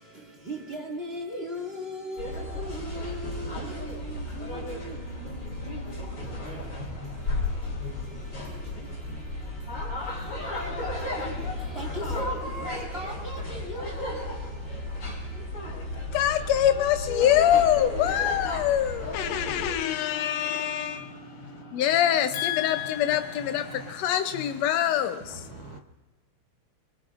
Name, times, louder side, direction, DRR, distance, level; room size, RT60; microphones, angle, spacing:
voice 1, 0.0-15.5, equal, 20° right, 1.8 m, -40 dB
sound 1, 2.2-19.7, left 1 dB, 40° left, 4.8 m, -34 dB
sound 2, 12.8-23.9, right 1 dB, 25° left, 2.9 m, -50 dB
voice 2, 16.1-25.8, left 11 dB, 85° left, 1.5 m, -25 dB
voice 3, 18.0-20.9 22.5-25.8, right 4 dB, 80° right, 1.3 m, -50 dB
24.0 x 23.5 x 2.5 m
omnidirectional pair, 3.8 m